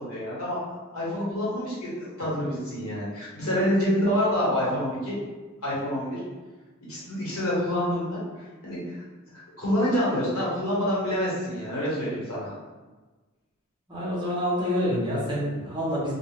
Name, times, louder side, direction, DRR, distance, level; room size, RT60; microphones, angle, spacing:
voice 1, 0.0-5.2 5.6-6.2 6.9-8.2 8.6-9.0 9.6-12.6, equal, 90° left, -8 dB, 1.2 m, -27 dB
voice 2, 13.9-16.1, equal, 20° right, -7 dB, 0.8 m, -27 dB
2.4 x 2.3 x 3.3 m, 1.2 s
head